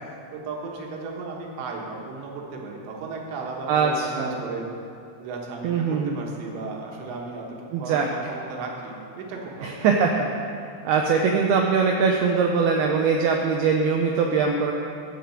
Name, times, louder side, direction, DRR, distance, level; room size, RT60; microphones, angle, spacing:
voice 1, 0.0-4.7 5.2-7.5 7.8-9.8, right 4 dB, 75° right, -1 dB, 3.5 m, -35 dB
voice 2, 3.7-4.4 5.6-6.2 7.7-8.1 9.6-10.3 10.8-14.7, right 5 dB, 90° right, 1 dB, 2.2 m, -22 dB
14.5 x 5.1 x 7.8 m, 2.5 s
omnidirectional pair, 5.4 m